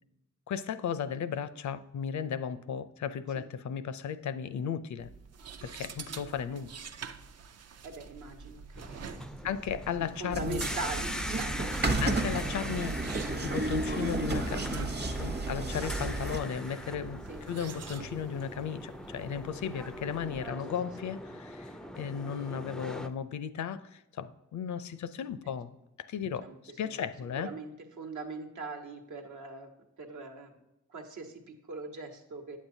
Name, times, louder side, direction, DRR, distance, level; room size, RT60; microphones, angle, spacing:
voice 1, 0.5-5.1 5.6-6.7 9.4-10.6 12.0-25.8 26.1-26.5 26.8-27.5, left 7 dB, 65° left, 13 dB, 0.5 m, -35 dB
sound 1, 5.0-20.5, right 6 dB, 55° right, 0.5 m, -47 dB
voice 2, 7.8-9.3 10.0-11.9 17.3-17.4 21.8-22.0 26.4-27.1 27.4-27.7 28.0-29.7 30.0-30.6 30.9-32.6, right 3 dB, 70° right, 3 dB, 1.2 m, -41 dB
sound 2, 8.8-23.1, left 1 dB, ahead, 0.3 m, -41 dB
sound 3, 10.3-16.4, right 2 dB, 35° right, 0.9 m, -32 dB
8.5 x 7.2 x 2.7 m, 0.93 s
cardioid pair, 90°, 31 cm